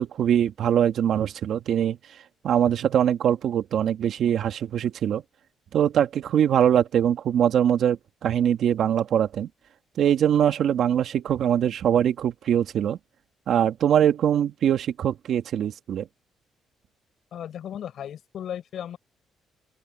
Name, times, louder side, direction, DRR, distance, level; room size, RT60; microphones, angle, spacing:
voice 1, 0.0-2.0 2.4-5.2 5.7-9.5 10.0-13.0 13.5-16.1, right 9 dB, 70° right, 1.9 m, -22 dB
voice 2, 17.3-19.0, left 10 dB, 65° left, 7.5 m, -35 dB
open air
cardioid pair, 90°, 0 cm